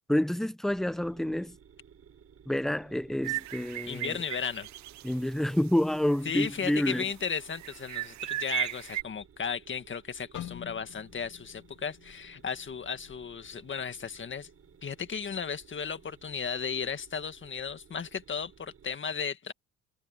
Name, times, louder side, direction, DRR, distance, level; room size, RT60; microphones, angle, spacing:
voice 1, 0.1-1.6 2.5-4.2 5.0-7.0, left 1 dB, ahead, 0.6 m, -28 dB
sound 1, 0.7-19.0, right 7 dB, 50° right, 6.8 m, -58 dB
sound 2, 3.2-5.1 5.5-5.6 6.1-6.9 7.5-9.0, right 16 dB, 65° right, 0.5 m, -36 dB
voice 2, 3.8-4.7 6.2-14.5 14.8-19.5, left 6 dB, 40° left, 1.7 m, -35 dB
sound 3, 10.3-14.4 14.7-15.0 15.6-16.0, left 12 dB, 75° left, 2.6 m, -48 dB
cardioid pair, 90°, 30 cm